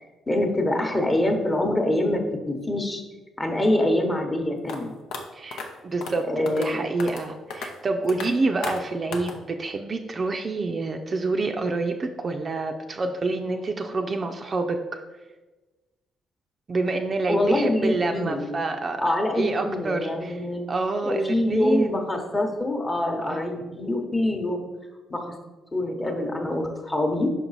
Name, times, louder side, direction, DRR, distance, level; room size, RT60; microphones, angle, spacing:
voice 1, 0.3-3.0 3.4-4.9 6.3-6.8 17.3-18.6 19.0-20.6 21.0-24.7 25.1-25.3 25.7-27.3, left 1 dB, 20° left, 4 dB, 1.0 m, -25 dB
sound 1, 4.7-4.8 5.1-5.2 5.5-5.7 6.0-6.2 6.5-6.7 7.0-7.2 7.5-7.7 8.1-8.3 8.6-8.8 9.1-9.3, left 4 dB, 85° left, 0.7 m, -33 dB
voice 2, 5.3-14.8 16.7-19.0 19.4-20.4 20.7-22.0 23.3-23.5, right 3 dB, 40° right, 5 dB, 0.4 m, -27 dB
5.6 x 4.5 x 4.0 m, 1.2 s
cardioid pair, 90°, 0 cm